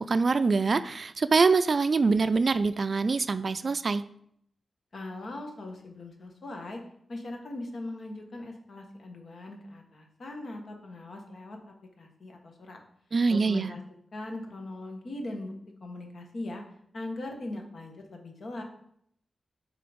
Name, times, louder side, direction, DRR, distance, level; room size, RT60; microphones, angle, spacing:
voice 1, 0.0-4.0 13.1-13.7, right 4 dB, 50° right, 13 dB, 0.3 m, -24 dB
voice 2, 4.9-6.8 7.1-12.8 13.3-13.8 14.1-15.5 15.8-16.6 16.9-18.6, left 2 dB, 65° left, 2 dB, 1.3 m, -40 dB
7.0 x 3.8 x 5.1 m, 0.70 s
cardioid pair, 80°, 0 cm